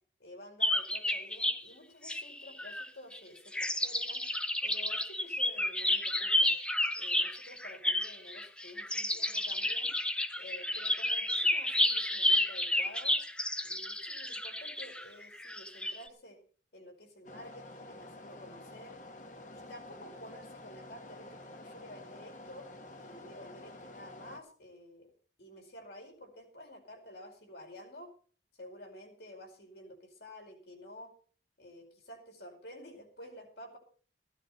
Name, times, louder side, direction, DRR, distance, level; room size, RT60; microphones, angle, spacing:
voice 1, 0.2-4.3 4.6-6.5 6.9-10.0 10.4-13.2 13.6-16.4 16.7-19.0 19.5-22.7 23.0-25.1 25.4-28.1 28.6-31.1 31.6-33.8, left 1 dB, 70° left, 2 dB, 4.9 m, -51 dB
sound 1, 0.6-1.6 2.0-3.2 3.5-16.0, left 1 dB, 5° left, 0.7 m, -31 dB
sound 2, 17.2-24.4, left 2 dB, 45° left, 1.6 m, -49 dB
15.5 x 13.0 x 4.4 m, 0.43 s
head